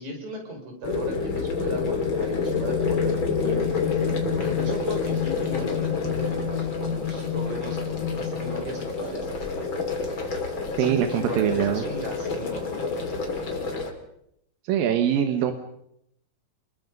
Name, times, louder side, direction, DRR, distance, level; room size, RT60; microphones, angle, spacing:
voice 1, 0.0-3.7 4.4-9.3 10.8-12.8, right 1 dB, 55° right, 1 dB, 6.8 m, -36 dB
sound 1, 0.8-13.9, left 4 dB, 35° left, 3.4 m, -29 dB
sound 2, 1.2-8.9, left 9 dB, 85° left, 3.5 m, -31 dB
voice 2, 10.8-11.9 14.6-15.5, right 9 dB, 90° right, 7 dB, 3.0 m, -23 dB
27.5 x 21.5 x 5.4 m, 0.77 s
omnidirectional pair, 4.0 m